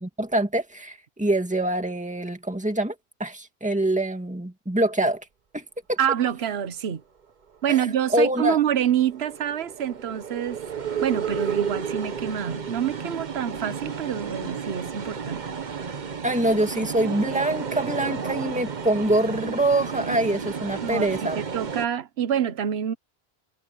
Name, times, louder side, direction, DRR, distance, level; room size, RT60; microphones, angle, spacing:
voice 1, 0.0-2.9 3.2-5.2 5.5-6.0 8.1-8.6 16.2-21.4, right 1 dB, 5° right, 2.1 m, -24 dB
voice 2, 6.0-7.0 7.6-10.6 11.0-15.4 20.8-22.9, right 9 dB, 75° right, 1.1 m, -26 dB
sound 1, 7.8-21.9, right 6 dB, 45° right, 1.1 m, -32 dB
omnidirectional pair, 1.1 m